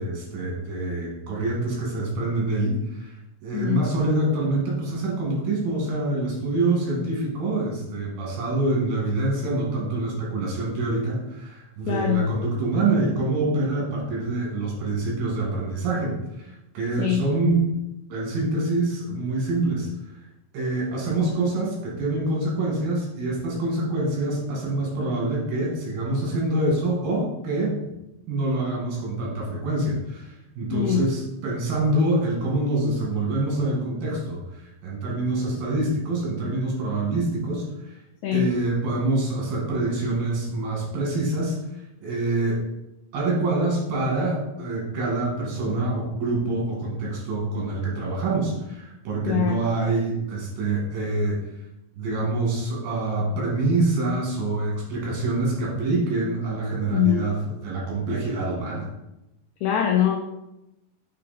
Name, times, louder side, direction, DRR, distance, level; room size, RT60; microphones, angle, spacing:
voice 1, 0.0-3.1 3.4-17.6 18.1-19.9 20.5-27.8 28.3-38.0 38.3-42.6 43.1-51.4 52.0-58.9, right 2 dB, 85° right, -3 dB, 3.8 m, -26 dB
voice 2, 11.9-12.2 17.0-17.2 30.7-31.1 38.2-38.5 49.3-49.6 56.9-57.3 59.6-60.2, left 10 dB, 85° left, 1 dB, 1.6 m, -22 dB
7.5 x 3.8 x 4.2 m, 0.93 s
omnidirectional pair, 4.0 m